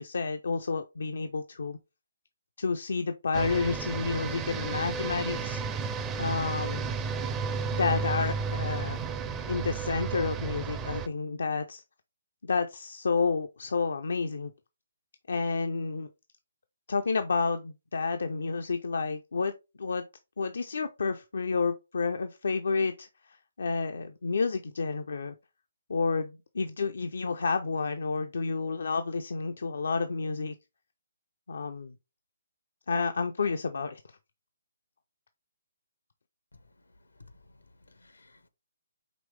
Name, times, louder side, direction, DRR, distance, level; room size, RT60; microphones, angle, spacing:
voice 1, 0.0-1.8 2.6-5.6 6.2-6.8 7.7-9.0 9.5-11.8 12.4-14.5 15.3-16.1 16.9-19.5 19.8-20.0 20.4-25.3 25.9-30.5 31.5-31.9 32.9-34.0, left 4 dB, 70° left, 0.4 m, -30 dB
sound 1, 3.3-11.1, right 5 dB, 15° right, 0.5 m, -33 dB
voice 2, 37.2-38.5, left 3 dB, 85° left, 0.8 m, -57 dB
5.1 x 3.0 x 3.3 m
figure-of-eight pair, 140°, 0 cm